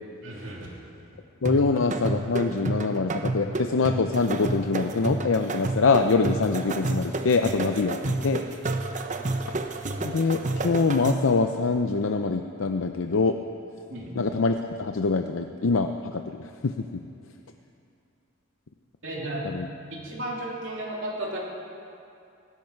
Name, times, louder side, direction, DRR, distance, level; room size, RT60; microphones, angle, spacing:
voice 1, 0.2-0.7 13.9-14.1 19.0-19.6 19.9-21.4, right 1 dB, 65° right, -3 dB, 3.1 m, -34 dB
voice 2, 1.4-8.4 10.0-13.3 14.1-16.9 19.4-19.7, left 4 dB, 80° left, 6 dB, 0.6 m, -24 dB
sound 1, 1.4-11.4, right 2 dB, 35° right, 0.8 m, -30 dB
18.0 x 16.0 x 4.6 m, 2.5 s
head